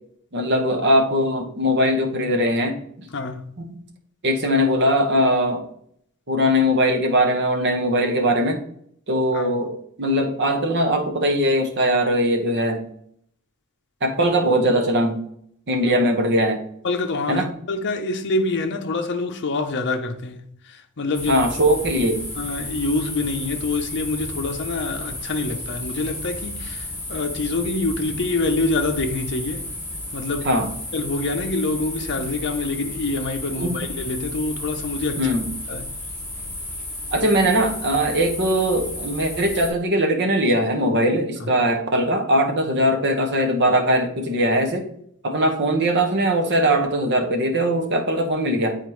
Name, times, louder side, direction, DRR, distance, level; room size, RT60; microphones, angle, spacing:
voice 1, 0.3-3.1 3.6-3.8 4.2-5.6 6.3-8.6 9.1-9.7 10.0-12.8 14.0-15.2 15.7-16.6 17.3-17.5 21.3-22.2 30.4-30.7 33.6-33.9 35.2-35.5 37.1-44.9 45.2-48.8, equal, 50° right, 1.1 m, -20 dB
voice 2, 3.1-3.5 9.3-9.5 16.8-21.4 22.4-29.6 30.1-30.6 30.9-35.3 35.7-35.8 41.4-41.5, left 3 dB, 55° left, 0.7 m, -26 dB
sound 1, 21.1-39.7, left 1 dB, 10° left, 2.5 m, -33 dB
8.6 x 4.1 x 3.1 m
head